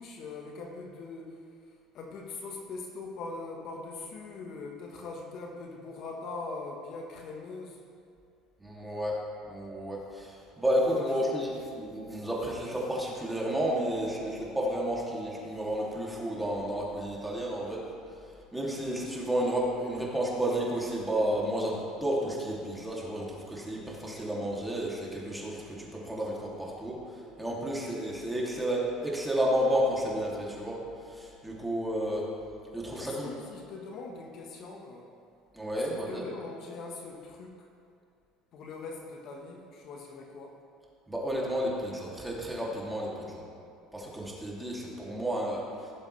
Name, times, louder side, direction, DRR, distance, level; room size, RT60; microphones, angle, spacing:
voice 1, 0.0-7.8 10.8-11.2 33.0-35.1 35.8-37.7 38.5-40.6, left 3 dB, 55° left, 1 dB, 1.3 m, -42 dB
voice 2, 8.6-9.2 9.5-11.5 11.7-17.8 18.5-30.8 31.0-32.2 32.7-33.3 35.5-36.3 41.1-43.4 43.9-45.6, equal, 5° right, -4 dB, 2.7 m, -31 dB
17.0 x 7.3 x 3.3 m, 2.4 s
supercardioid pair, 100°, 0 cm